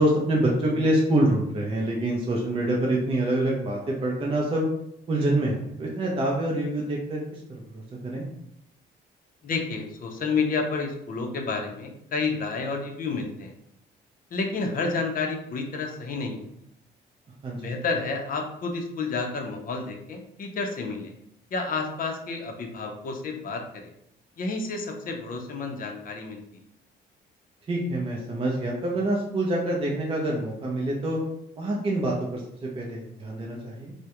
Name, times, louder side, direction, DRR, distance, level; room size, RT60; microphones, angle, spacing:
voice 1, 0.0-4.7 5.1-8.3 17.4-17.8 27.7-31.2 31.6-33.9, right 1 dB, 30° right, -2 dB, 0.5 m, -26 dB
voice 2, 9.4-13.5 14.3-16.5 17.6-21.1 21.5-23.9 24.4-26.4, left 4 dB, 45° left, 3 dB, 0.5 m, -30 dB
2.3 x 2.1 x 2.8 m, 0.74 s
cardioid pair, 90°, 20 cm